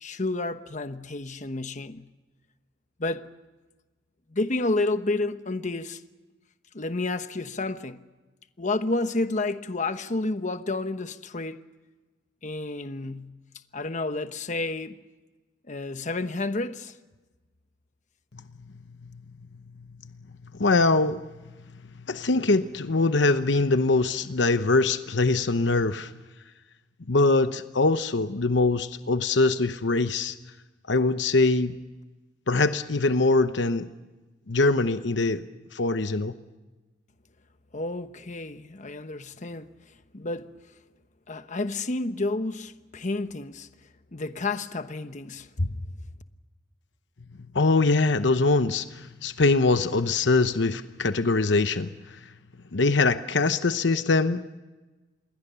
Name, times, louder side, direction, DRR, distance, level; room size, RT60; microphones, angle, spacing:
voice 1, 0.0-2.1 3.0-3.2 4.3-6.0 6.7-8.0 8.6-11.6 12.4-13.4 13.7-15.0 15.7-16.9 37.7-39.7 40.1-40.5 41.3-43.7 44.1-45.9, left 2 dB, 40° left, 1.1 m, -30 dB
voice 2, 20.5-21.2 22.1-26.1 27.1-30.4 30.9-31.8 32.5-33.9 34.5-35.5 35.7-36.3 47.5-52.2 52.7-54.4, left 3 dB, 70° left, 0.9 m, -23 dB
27.5 x 22.0 x 6.9 m
head